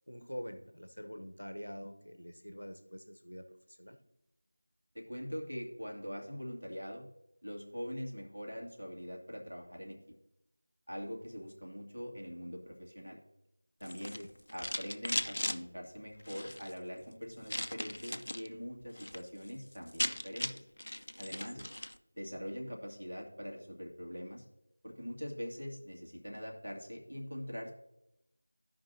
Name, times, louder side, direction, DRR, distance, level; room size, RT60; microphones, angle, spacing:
voice 1, 0.1-4.0 14.1-14.3 21.6-21.7, equal, 85° left, 7 dB, 0.9 m, -46 dB
voice 2, 4.9-7.1 7.4-10.0 10.9-13.2 13.8-14.2 14.5-20.7 21.2-21.6 22.1-24.4 24.8-27.7, equal, 75° right, 0 dB, 2.3 m, -43 dB
sound 1, 13.8-15.6 16.2-16.7 17.5-18.5 18.8-19.2 19.5-19.6 19.8-22.0, left 1 dB, 55° left, 0.5 m, -38 dB
15.0 x 5.4 x 2.7 m, 0.87 s
figure-of-eight pair, 170°, 0 cm